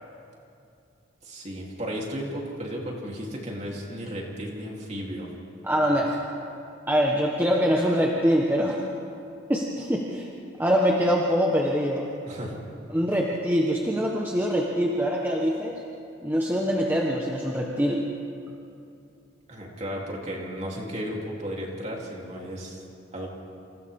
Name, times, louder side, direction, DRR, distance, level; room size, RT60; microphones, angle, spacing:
voice 1, 1.2-5.3 12.2-12.6 19.5-22.8 23.1-23.3, equal, 35° right, -2 dB, 3.4 m, -34 dB
voice 2, 5.6-6.2 6.9-8.8 9.5-10.3 10.6-12.1 12.9-15.8 16.2-18.1, equal, 10° right, -2 dB, 1.3 m, -24 dB
28.5 x 27.5 x 3.7 m, 2.6 s
head